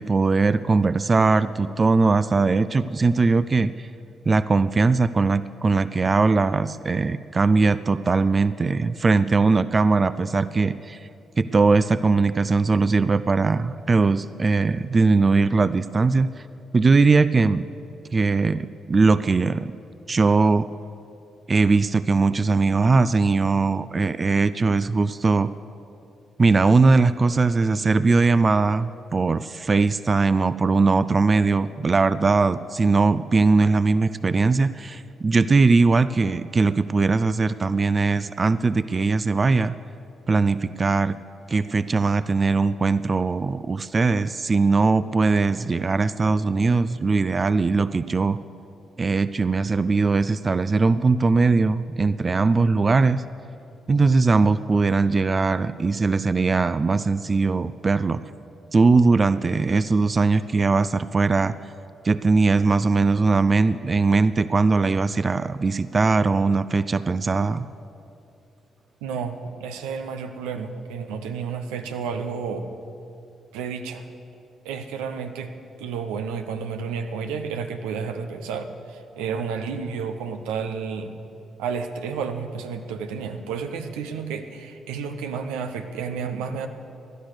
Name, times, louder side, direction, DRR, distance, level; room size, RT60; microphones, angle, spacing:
voice 1, 0.0-3.9 4.3-11.1 11.4-16.3 16.7-17.7 18.1-19.7 20.1-20.7 21.5-25.5 26.4-39.7 40.3-41.2 41.5-48.4 49.0-53.2 53.9-58.2 58.7-61.5 62.0-67.7, right 4 dB, 40° right, 15 dB, 0.4 m, -20 dB
voice 2, 69.0-72.7 73.5-74.1 74.6-75.5 75.8-81.2 81.6-86.7, right 6 dB, 90° right, 7 dB, 0.8 m, -31 dB
16.5 x 11.5 x 6.6 m, 2.7 s
supercardioid pair, 55°, 0 cm